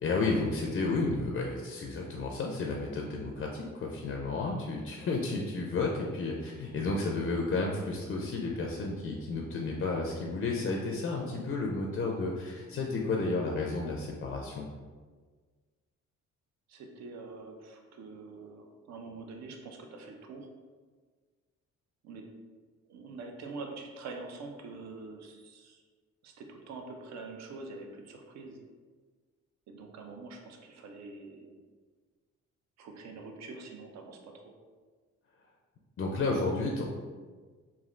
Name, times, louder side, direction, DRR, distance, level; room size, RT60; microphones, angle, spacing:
voice 1, 0.0-14.7 36.0-36.9, left 3 dB, 40° left, 0 dB, 0.4 m, -32 dB
voice 2, 16.7-20.5 22.0-22.3 22.9-25.8 26.2-28.6 29.7-31.6 32.8-34.5, right 3 dB, 60° right, 3 dB, 0.5 m, -45 dB
3.1 x 2.4 x 2.4 m, 1.5 s
cardioid pair, 90°, 30 cm